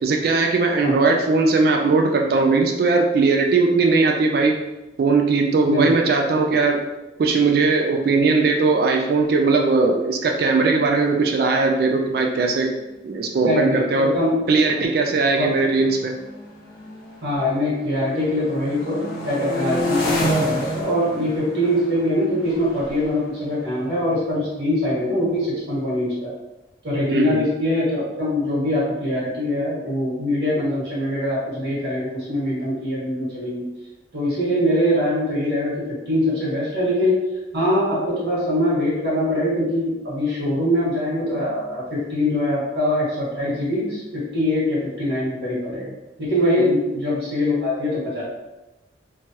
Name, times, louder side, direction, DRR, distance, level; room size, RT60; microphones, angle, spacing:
voice 1, 0.0-4.6 5.0-6.8 7.2-12.7 13.0-14.1 14.5-16.1 27.0-27.4, right 3 dB, 55° right, 2 dB, 0.3 m, -19 dB
voice 2, 5.6-6.0 13.4-14.3 14.7-15.5 17.2-26.3 26.8-33.6 34.1-37.2 37.5-45.9 46.2-48.2, left 1 dB, 75° right, -8 dB, 1.4 m, -23 dB
sound 1, 12.0-12.1 12.4-12.7 13.5-17.4 17.8-24.4, left 1 dB, 55° left, 0.9 m, -30 dB
3.1 x 2.3 x 2.7 m, 1.0 s
head